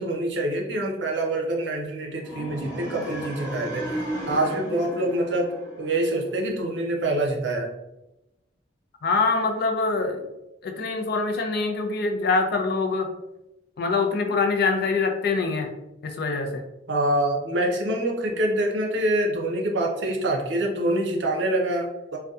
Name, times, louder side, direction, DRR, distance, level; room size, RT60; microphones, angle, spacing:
voice 1, 0.0-7.7 16.9-22.2, right 1 dB, 70° right, 1 dB, 0.5 m, -26 dB
sound 1, 2.2-6.3, right 1 dB, 15° left, 0.9 m, -34 dB
voice 2, 9.0-10.2 10.6-13.1 13.8-15.7 16.0-16.6, left 4 dB, 55° left, 4 dB, 0.4 m, -24 dB
2.6 x 2.2 x 2.3 m, 0.94 s
head